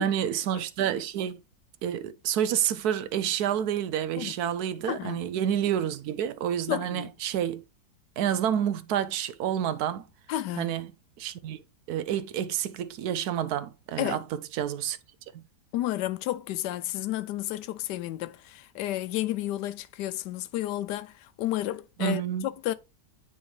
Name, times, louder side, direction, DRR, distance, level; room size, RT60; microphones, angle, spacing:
voice 1, 0.0-1.4 1.8-7.6 8.2-10.1 10.6-10.9 11.2-11.6 11.9-15.0 15.3-15.4 22.0-22.5, right 10 dB, 75° right, 1.0 m, -29 dB
voice 2, 4.9-5.2 6.7-7.1 10.3-10.7 14.0-14.2 15.7-22.7, left 14 dB, 90° left, 1.2 m, -31 dB
9.4 x 3.6 x 3.1 m
omnidirectional pair, 1.8 m